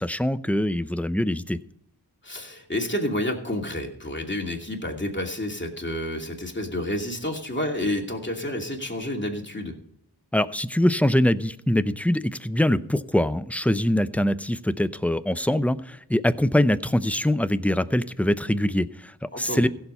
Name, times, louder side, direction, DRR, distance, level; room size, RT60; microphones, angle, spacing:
voice 1, 0.0-1.6 10.3-19.7, left 1 dB, 5° left, 14 dB, 0.6 m, -23 dB
voice 2, 2.2-9.7 19.3-19.7, left 1 dB, 25° left, 1 dB, 2.7 m, -29 dB
16.0 x 7.1 x 5.6 m, 0.71 s
wide cardioid pair, 45°, 40 cm